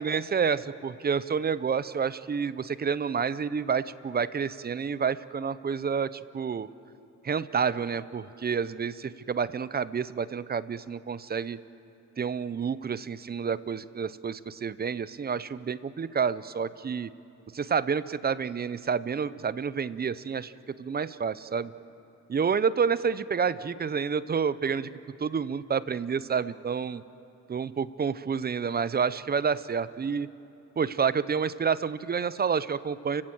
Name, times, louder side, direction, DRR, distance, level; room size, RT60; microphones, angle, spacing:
voice 1, 0.0-6.7 7.2-11.6 12.2-17.1 17.5-20.5 20.8-21.7 22.3-24.9 25.2-27.0 27.5-30.3 30.8-33.2, right 6 dB, 30° right, 16 dB, 0.7 m, -29 dB
30.0 x 16.5 x 7.9 m, 2.9 s
cardioid pair, 90°, 30 cm